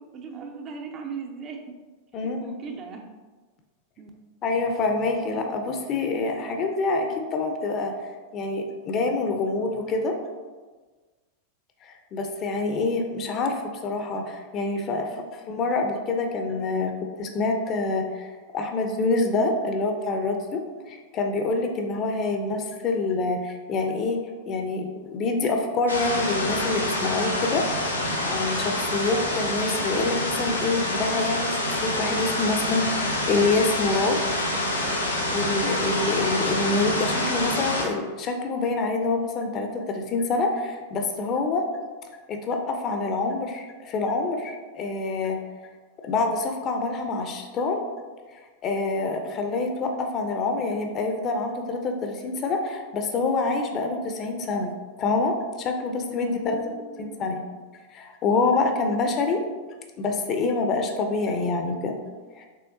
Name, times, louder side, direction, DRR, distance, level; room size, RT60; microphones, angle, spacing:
voice 1, 0.0-1.8 2.2-3.1 4.0-4.1 56.1-57.7, right 5 dB, 30° right, 3 dB, 0.5 m, -39 dB
voice 2, 2.1-2.5 4.4-7.9 8.3-10.1 11.8-16.9 17.2-20.6 20.9-24.2 24.5-27.9 28.2-34.2 35.0-41.7 42.3-45.4 46.0-47.8 48.3-54.7 55.0-56.6 57.0-57.4 57.9-59.4 60.0-62.0 62.4-62.5, left 3 dB, 30° left, 4 dB, 0.6 m, -26 dB
sound 1, 25.9-37.9, left 1 dB, 85° left, 0.8 m, -27 dB
5.6 x 3.4 x 2.6 m, 1.4 s
figure-of-eight pair, 90°, 0 cm